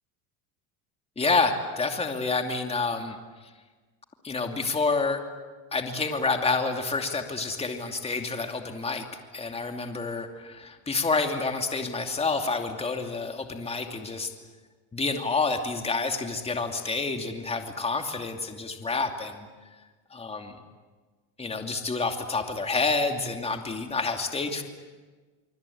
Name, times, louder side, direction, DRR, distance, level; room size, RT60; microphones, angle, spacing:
voice 1, 1.2-3.2 4.2-5.2 5.7-9.1 9.3-14.3 14.9-19.5 20.1-20.5 21.4-24.6, left 4 dB, 15° left, 4 dB, 2.7 m, -28 dB
25.5 x 25.0 x 8.6 m, 1.4 s
supercardioid pair, 125°, 40 cm